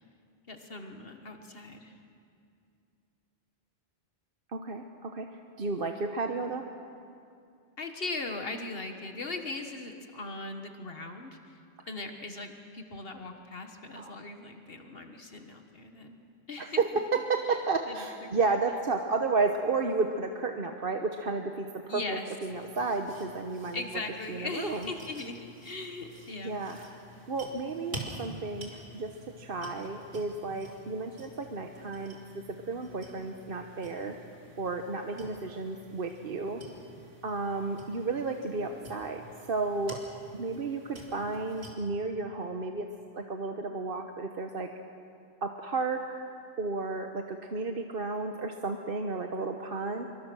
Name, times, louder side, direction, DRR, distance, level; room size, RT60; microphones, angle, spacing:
voice 1, 0.5-1.9 7.8-11.6 11.9-16.2 16.5-17.0 17.5-17.6 17.9-18.0 18.2-18.6 21.9-22.3 23.7-26.6 35.1-35.5, left 3 dB, 65° left, 5 dB, 1.6 m, -39 dB
voice 2, 4.5-5.3 5.6-6.6 13.9-14.1 16.6-23.8 24.3-24.9 26.4-26.9 27.3-34.2 34.6-36.6 37.2-39.2 39.5-40.0 40.3-42.9 43.1-44.7 45.4-46.2 46.6-50.1, right 3 dB, 60° right, 5 dB, 1.2 m, -32 dB
sound 1, 22.5-41.7, right 1 dB, 90° right, 3.3 m, -49 dB
26.5 x 24.0 x 6.2 m, 2.5 s
omnidirectional pair, 1.0 m